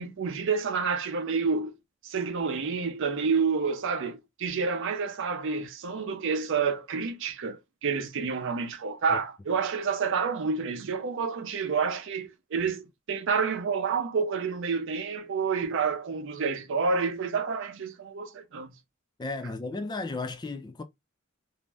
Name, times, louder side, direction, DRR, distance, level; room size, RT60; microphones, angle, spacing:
voice 1, 0.0-1.8 2.0-18.7, right 5 dB, 60° right, 0.5 m, -29 dB
voice 2, 19.2-20.8, left 3 dB, 20° left, 0.3 m, -34 dB
2.6 x 2.0 x 3.2 m
head